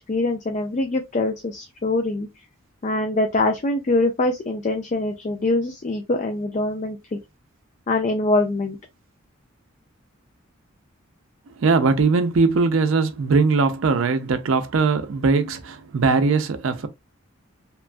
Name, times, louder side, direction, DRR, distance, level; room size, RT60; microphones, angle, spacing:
voice 1, 0.0-2.3 2.8-7.2 7.9-8.8, left 2 dB, 35° left, 0.4 m, -23 dB
voice 2, 11.6-16.9, right 4 dB, 70° right, 0.5 m, -20 dB
3.0 x 2.2 x 2.5 m
head